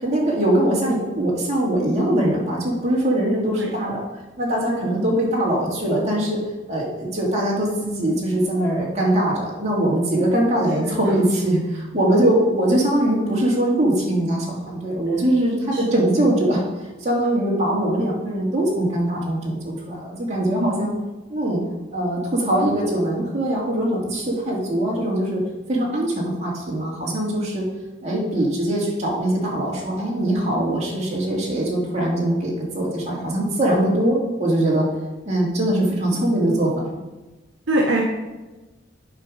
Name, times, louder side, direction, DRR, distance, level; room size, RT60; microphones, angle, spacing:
voice 1, 0.0-4.0 4.4-6.4 6.7-16.6 17.0-20.9 21.3-21.6 21.9-25.4 25.7-27.6 28.0-34.9 35.2-36.9, right 1 dB, 35° right, -4 dB, 2.4 m, -22 dB
voice 2, 10.9-11.2 15.7-15.8 20.6-20.8 37.7-38.0, right 1 dB, 65° right, -1 dB, 1.2 m, -23 dB
8.1 x 5.2 x 6.2 m, 1.1 s
head